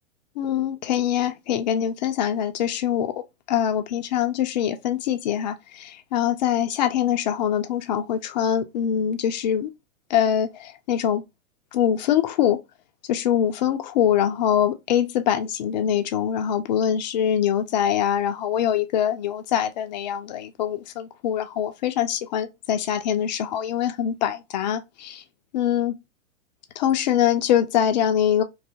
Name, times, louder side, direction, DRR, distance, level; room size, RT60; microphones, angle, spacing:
voice 1, 0.4-9.7 10.1-11.2 11.7-12.6 13.1-25.1 25.5-26.0 26.8-28.4, left 10 dB, 35° left, 0.4 m, -23 dB
2.6 x 2.3 x 2.5 m
figure-of-eight pair, 110°, 41 cm